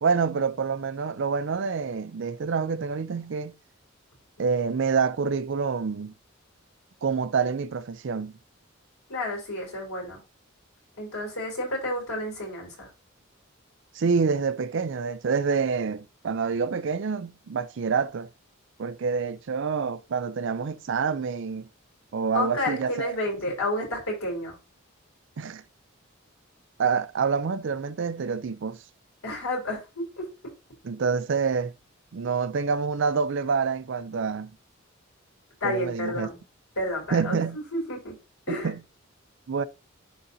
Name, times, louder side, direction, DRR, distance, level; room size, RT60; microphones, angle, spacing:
voice 1, 0.0-3.5 4.4-6.1 7.0-8.3 13.9-18.3 18.8-21.7 22.1-23.1 25.4-25.6 26.8-28.8 30.8-31.7 32.1-34.5 35.6-36.3 37.1-37.6 38.5-38.8 39.5-39.6, right 5 dB, 60° right, 0.4 m, -27 dB
voice 2, 9.1-10.2 11.0-12.9 22.3-24.6 29.2-30.3 35.6-36.4 36.8-38.2 38.5-38.7, left 1 dB, 90° left, 3.9 m, -30 dB
11.5 x 3.9 x 2.7 m
head